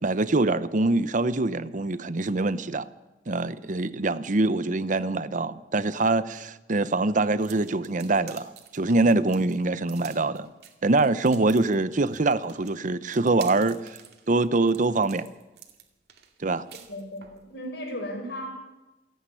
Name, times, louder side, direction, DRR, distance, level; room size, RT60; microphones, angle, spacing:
voice 1, 0.0-2.9 3.3-10.5 10.8-14.0 14.3-15.3 16.4-16.7, right 2 dB, 45° right, 0.8 m, -24 dB
sound 1, 7.4-17.4, right 9 dB, 65° right, 2.4 m, -49 dB
voice 2, 16.9-18.5, equal, 70° left, 6.0 m, -35 dB
27.5 x 9.5 x 9.9 m
head